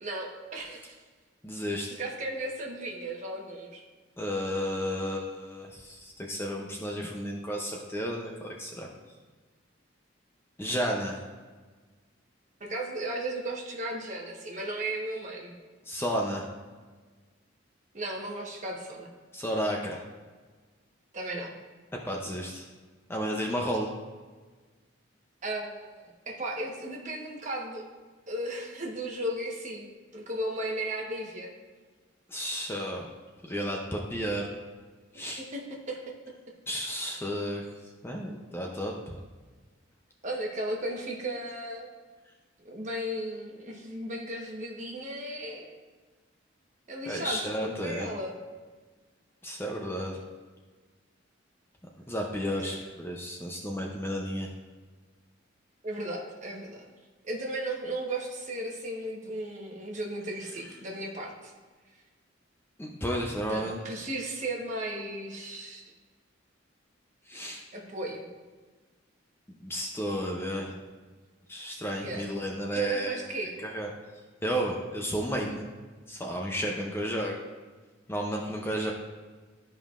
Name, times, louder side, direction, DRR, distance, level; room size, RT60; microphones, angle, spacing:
voice 1, 0.0-1.0 2.0-3.8 12.6-15.5 17.9-19.1 21.1-21.5 25.4-27.9 28.3-29.9 30.1-31.5 35.3-36.0 40.2-41.9 42.6-45.7 46.9-48.3 52.6-52.8 55.8-56.8 57.2-61.5 63.5-65.8 67.7-68.2 72.0-72.3 72.7-73.6, right 1 dB, 40° right, -1 dB, 1.2 m, -35 dB
voice 2, 1.4-2.0 4.2-8.9 10.6-11.2 15.9-16.5 19.3-20.0 22.0-22.7 23.1-23.9 32.3-33.1 33.5-34.5 35.1-35.4 36.7-37.7 38.0-38.9 47.1-48.1 49.4-50.2 52.1-54.5 62.8-63.8 67.3-67.6 69.6-70.8 71.5-73.2 73.7-73.9 74.4-75.7 76.1-77.4 78.1-78.9, equal, 10° left, 0 dB, 0.6 m, -32 dB
12.0 x 5.3 x 2.5 m, 1.4 s
head